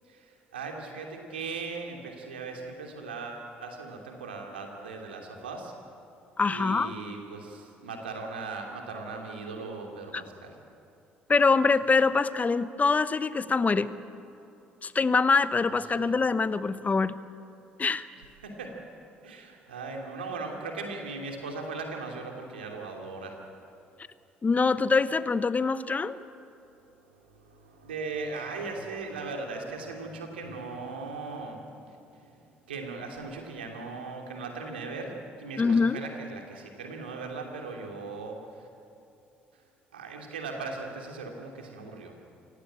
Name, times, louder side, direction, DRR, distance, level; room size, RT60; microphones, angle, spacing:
voice 1, 0.1-5.7 6.5-10.5 15.9-16.2 18.4-18.7 19.2-23.4 27.2-32.3 32.7-35.1 35.4-38.7 39.9-42.1, right 3 dB, 85° right, 2 dB, 3.0 m, -38 dB
voice 2, 6.4-6.9 11.3-13.9 14.8-17.2 17.8-18.1 24.4-26.2 35.6-36.0, left 4 dB, 30° left, 15 dB, 1.0 m, -24 dB
27.5 x 16.5 x 8.9 m, 2.8 s
figure-of-eight pair, 50°, 5 cm